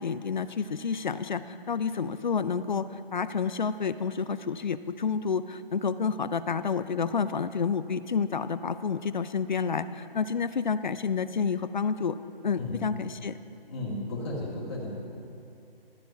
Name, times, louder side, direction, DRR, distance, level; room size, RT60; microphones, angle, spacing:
voice 1, 0.0-12.2 12.4-13.4, left 6 dB, 50° left, 13 dB, 0.4 m, -29 dB
voice 2, 13.7-15.1, left 2 dB, 25° left, -7 dB, 1.9 m, -34 dB
13.0 x 7.1 x 5.6 m, 2.6 s
hypercardioid pair, 165°, 30 cm